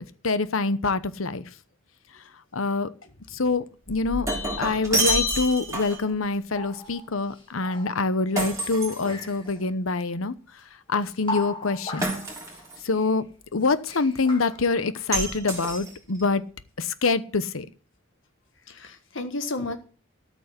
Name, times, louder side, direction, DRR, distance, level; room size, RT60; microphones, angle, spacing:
voice 1, 0.2-1.4 2.5-2.9 3.4-4.3 4.6-10.3 10.9-12.1 12.9-13.2 13.5-16.4 16.8-17.7, left 3 dB, 85° left, 14 dB, 0.9 m, -25 dB
Shatter, 3.9-6.1 8.4-9.6 12.0-12.8 15.1-16.2, right 1 dB, 15° right, 3.4 m, -28 dB
sound 1, 6.5-8.3 8.7-9.6 10.6-10.7 11.0-13.2 13.6-15.1, left 2 dB, 25° left, 2.6 m, -39 dB
voice 2, 18.7-19.8, left 2 dB, 65° left, 8 dB, 1.4 m, -33 dB
13.5 x 6.3 x 8.2 m, 0.39 s
head